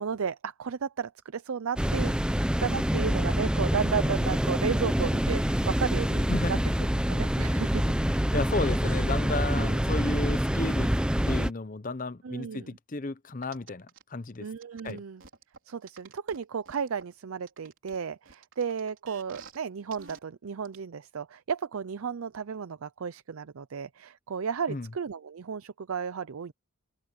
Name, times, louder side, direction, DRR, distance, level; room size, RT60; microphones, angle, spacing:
voice 1, 0.0-2.3 2.6-6.6 7.1-7.8 8.6-8.7 9.5-9.8 12.2-12.8 14.4-15.2 15.7-26.5, right 6 dB, 85° right, 0.5 m, -33 dB
sound 1, 1.8-11.5, equal, 5° right, 0.7 m, -26 dB
voice 2, 6.3-6.6 8.3-10.9 11.3-14.5 14.8-15.0 24.7-24.9, left 2 dB, 40° left, 0.8 m, -33 dB
sound 2, 13.4-14.0 14.6-17.0 17.5-19.6 19.9-20.2 20.6-20.8, right 5 dB, 65° right, 4.0 m, -50 dB
open air
head